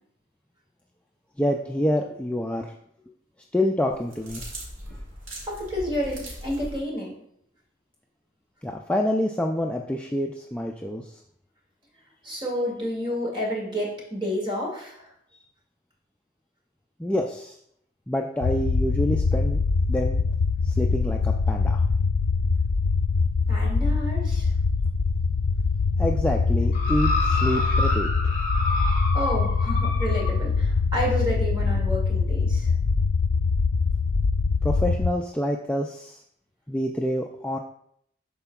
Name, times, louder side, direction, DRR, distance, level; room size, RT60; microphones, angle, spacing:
voice 1, 1.4-2.7 3.5-4.4 8.6-11.2 17.0-17.6 18.1-19.6 19.9-20.2 20.6-21.8 26.0-28.1 34.6-36.2 36.7-37.6, left 1 dB, 5° left, 1 dB, 0.3 m, -27 dB
sound 1, 3.9-6.8, equal, 85° right, 2.2 m, -39 dB
voice 2, 5.5-7.1 12.2-15.1 23.5-24.5 29.1-32.7, equal, 25° right, -3 dB, 2.2 m, -30 dB
sound 2, 18.4-35.1, left 4 dB, 85° left, 0.4 m, -23 dB
sound 3, 26.7-30.4 31.2-31.3, left 2 dB, 40° left, 1.4 m, -28 dB
12.5 x 4.4 x 2.3 m, 0.69 s
head